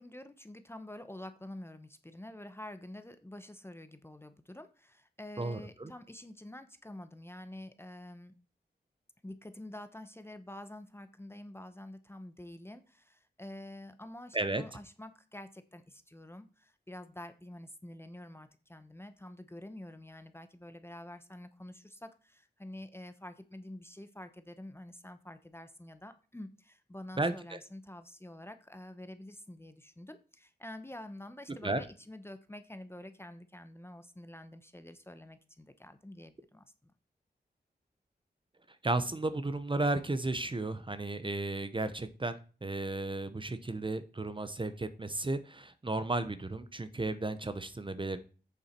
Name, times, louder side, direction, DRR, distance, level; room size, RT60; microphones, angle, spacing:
voice 1, 0.0-8.4 9.2-36.9, left 1 dB, 15° left, 10 dB, 0.9 m, -48 dB
voice 2, 5.4-5.9 14.3-14.6 27.2-27.6 31.6-31.8 38.8-48.2, right 2 dB, 30° right, 11 dB, 0.9 m, -34 dB
8.6 x 7.0 x 4.5 m, 0.36 s
wide cardioid pair, 85°, 17 cm